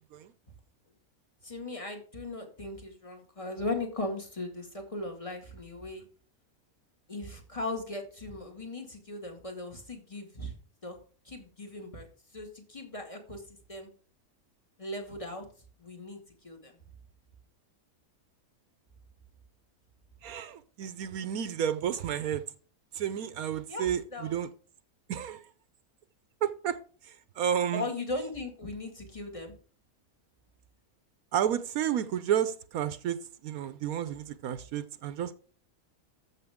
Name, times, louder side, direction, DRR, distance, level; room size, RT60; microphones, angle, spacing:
voice 1, 1.4-6.1 7.1-10.5 10.8-11.0 11.3-12.1 12.3-13.9 14.8-15.5 15.8-16.8 23.7-24.3 27.7-29.5, left 2 dB, 20° left, 2.0 m, -38 dB
voice 2, 20.2-22.4 22.9-24.5 25.1-25.4 26.4-26.8 27.4-27.8 31.3-33.2 33.4-35.3, right 9 dB, 80° right, 1.1 m, -31 dB
14.0 x 6.2 x 3.6 m
omnidirectional pair, 1.5 m